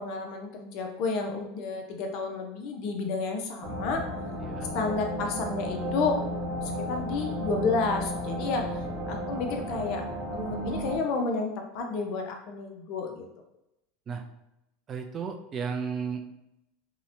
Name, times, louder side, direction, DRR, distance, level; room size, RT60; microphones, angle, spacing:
voice 1, 0.0-4.0 4.7-6.2 6.6-8.8 9.1-10.0 10.3-13.3, left 4 dB, 55° left, 3 dB, 0.5 m, -31 dB
sound 1, 3.6-11.0, equal, 60° right, 0.7 m, -33 dB
voice 2, 4.4-4.7 14.1-14.2 14.9-16.3, right 6 dB, 30° right, 5 dB, 0.3 m, -34 dB
2.8 x 2.1 x 2.5 m, 0.87 s
supercardioid pair, 125°, 0 cm